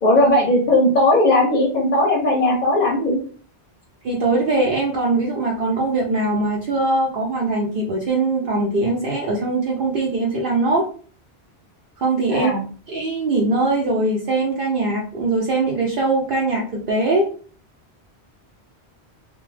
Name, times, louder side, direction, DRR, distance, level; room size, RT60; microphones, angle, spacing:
voice 1, 0.0-3.2 12.3-12.6, left 1 dB, 50° left, -1 dB, 0.6 m, -17 dB
voice 2, 4.0-10.9 12.0-12.5 12.9-17.2, right 2 dB, 60° right, -1 dB, 0.7 m, -21 dB
2.3 x 2.1 x 3.1 m, 0.42 s
omnidirectional pair, 1.1 m